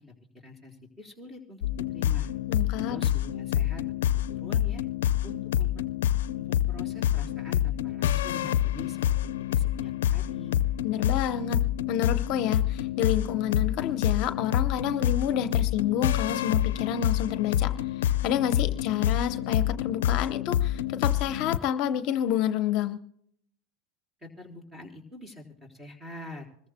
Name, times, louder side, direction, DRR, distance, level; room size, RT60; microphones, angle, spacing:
voice 1, 0.3-2.3 2.9-3.8 4.3-4.8 5.2-5.8 6.4-10.6 24.2-26.5, left 1 dB, 10° right, 1 dB, 4.2 m, -45 dB
sound 1, 1.6-21.6, left 11 dB, 85° left, 0.5 m, -27 dB
voice 2, 2.5-3.0 10.8-11.6 11.9-17.7 18.0-23.0, left 10 dB, 55° left, 10 dB, 0.8 m, -29 dB
26.0 x 14.5 x 2.2 m, 0.70 s
supercardioid pair, 120°, 0 cm